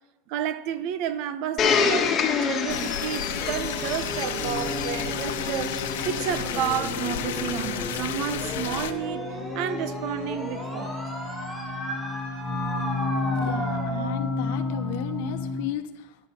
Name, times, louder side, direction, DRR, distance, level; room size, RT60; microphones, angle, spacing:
voice 1, 0.3-2.1 2.4-5.8 6.1-9.2 9.5-11.0, right 9 dB, 50° right, 0.7 m, -31 dB
Domestic sounds home sounds, 1.6-6.4 7.2-7.3, left 6 dB, 25° left, 1.4 m, -28 dB
sound 1, 2.1-15.7, left 2 dB, 5° right, 3.3 m, -31 dB
sound 2, 2.7-8.9, left 10 dB, 85° left, 1.0 m, -32 dB
voice 2, 13.3-16.2, left 11 dB, 60° left, 1.0 m, -34 dB
14.5 x 10.5 x 4.3 m
supercardioid pair, 155°, 0 cm